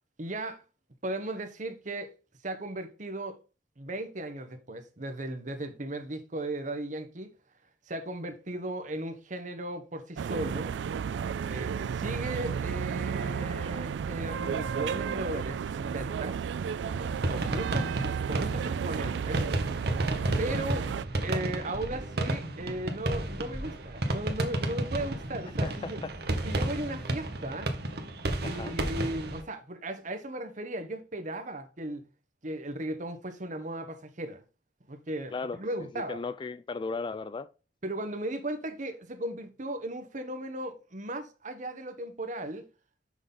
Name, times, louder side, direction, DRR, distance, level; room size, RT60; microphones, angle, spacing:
voice 1, 0.2-0.6 1.0-2.1 2.4-3.4 3.8-7.3 7.9-10.8 11.5-16.4 17.3-19.5 20.4-20.9 21.2-26.0 26.4-27.7 28.4-32.0 32.4-34.4 34.9-36.2 37.8-42.7, right 1 dB, 45° right, 1.1 m, -36 dB
sound 1, 10.2-21.1, right 7 dB, 85° right, 0.3 m, -33 dB
sound 2, 16.8-29.4, right 1 dB, 60° right, 1.1 m, -32 dB
voice 2, 28.4-28.8 35.3-35.6 35.9-37.5, left 4 dB, 25° left, 0.3 m, -35 dB
6.3 x 5.6 x 3.9 m
head